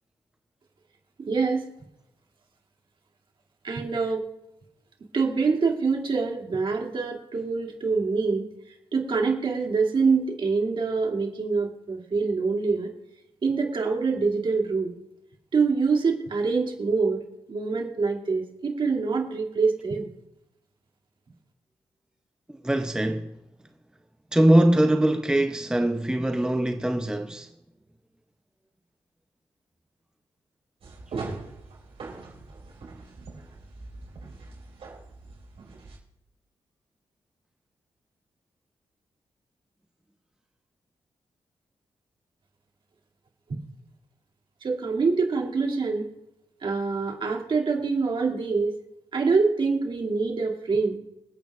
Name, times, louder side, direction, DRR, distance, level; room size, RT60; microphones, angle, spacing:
voice 1, 1.2-1.7 3.6-4.2 5.1-8.5 8.9-12.9 13.4-14.9 15.5-17.2 17.5-20.1 43.5-43.6 44.6-46.1 46.6-48.8 49.1-51.0, right 4 dB, 55° right, 2.5 m, -25 dB
voice 2, 22.5-23.4 24.3-27.5, right 1 dB, 5° right, 0.6 m, -22 dB
sound 1, 30.8-36.0, right 3 dB, 75° right, 4.8 m, -41 dB
26.0 x 8.9 x 2.4 m
cardioid pair, 90°, 10 cm